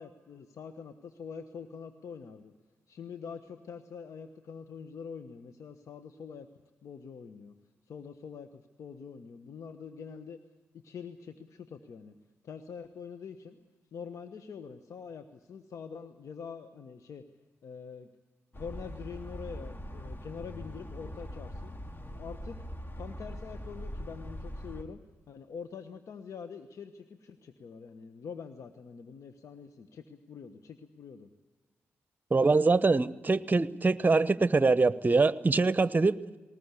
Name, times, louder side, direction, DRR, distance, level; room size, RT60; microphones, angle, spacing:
voice 1, 0.0-2.5 2.9-6.5 6.8-7.5 7.9-10.4 10.7-12.2 12.4-13.6 13.9-17.2 17.6-18.1 18.5-21.7 22.1-22.6 23.0-25.0 25.3-31.3, left 6 dB, 65° left, 9 dB, 1.2 m, -45 dB
sound 1, 18.5-24.8, equal, 35° left, 2.4 m, -42 dB
voice 2, 32.3-36.1, right 3 dB, 30° right, 16 dB, 0.9 m, -24 dB
19.5 x 19.5 x 8.3 m, 1.3 s
hypercardioid pair, 45°, 6 cm